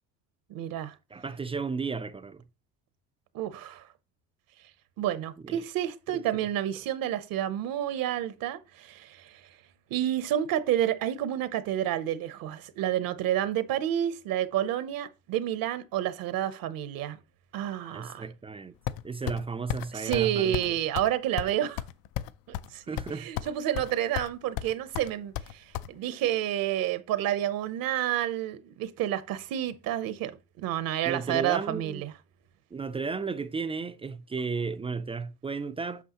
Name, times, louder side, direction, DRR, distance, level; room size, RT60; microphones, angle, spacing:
voice 1, 0.5-0.9 3.3-3.9 5.0-9.5 9.9-17.2 17.5-18.3 19.9-21.8 22.5-30.3 30.6-32.1, right 11 dB, 60° right, 0.7 m, -30 dB
voice 2, 1.1-2.4 5.4-5.6 6.3-6.5 17.9-18.8 19.0-20.7 22.9-23.3 23.7-23.9 31.0-32.0 32.7-36.0, right 4 dB, 15° right, 0.3 m, -34 dB
sound 1, 18.9-19.4 19.7-19.9 20.1-20.3 20.5-20.7 21.0-21.1 21.4-22.7 23.0-23.5 23.8-24.3 24.6-25.9, left 12 dB, 65° left, 0.5 m, -33 dB
8.3 x 5.5 x 2.9 m
cardioid pair, 120°, 39 cm